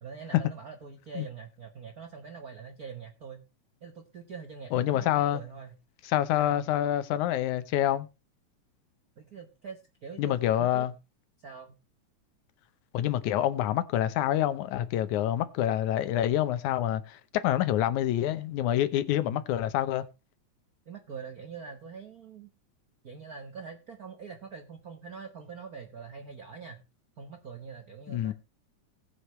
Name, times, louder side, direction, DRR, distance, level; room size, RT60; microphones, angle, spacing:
voice 1, 0.0-3.4 3.8-5.7 6.4-6.7 9.2-10.9 11.4-11.7 19.2-19.5 20.9-22.5 23.0-26.8 27.2-28.3, right 6 dB, 65° right, 0.9 m, -44 dB
voice 2, 4.7-5.4 6.1-8.1 10.2-10.9 12.9-20.1 28.1-28.3, left 12 dB, 90° left, 2.3 m, -27 dB
19.0 x 6.4 x 3.2 m
omnidirectional pair, 3.3 m